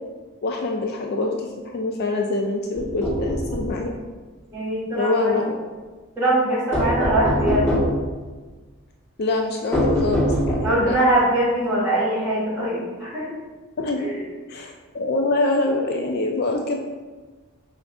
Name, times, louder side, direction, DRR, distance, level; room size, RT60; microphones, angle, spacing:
voice 1, 0.4-3.9 4.9-5.5 9.2-10.9 13.8-14.1 14.5-16.8, left 2 dB, 45° left, 1 dB, 0.3 m, -25 dB
sound 1, 2.7-3.7 6.7-8.0 9.7-10.9, equal, 10° left, 1.4 m, -23 dB
voice 2, 4.5-5.4 6.1-7.7 10.6-13.3 14.0-14.2, right 1 dB, 10° right, -9 dB, 1.5 m, -22 dB
4.9 x 2.5 x 3.4 m, 1.3 s
head